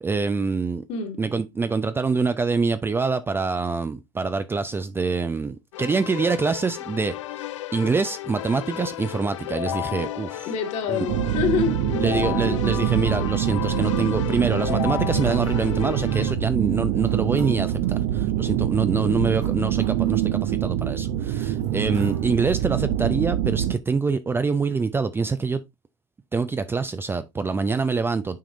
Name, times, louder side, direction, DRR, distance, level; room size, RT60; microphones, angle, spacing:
voice 1, 0.0-0.8 1.2-7.1 7.7-10.5 10.9-11.1 12.0-25.6 26.3-28.4, right 4 dB, 15° right, 0.5 m, -25 dB
Keyboard (musical), 5.7-16.3, left 13 dB, 80° left, 0.4 m, -33 dB
voice 2, 10.5-12.7, left 7 dB, 50° left, 2.2 m, -27 dB
sound 1, 11.1-23.7, right 12 dB, 55° right, 0.8 m, -25 dB
sound 2, 15.2-16.0 16.7-16.8 17.1-18.0 18.8-20.7 21.3-22.7, right 5 dB, 70° right, 3.4 m, -49 dB
9.3 x 4.9 x 2.6 m
hypercardioid pair, 90°, 16 cm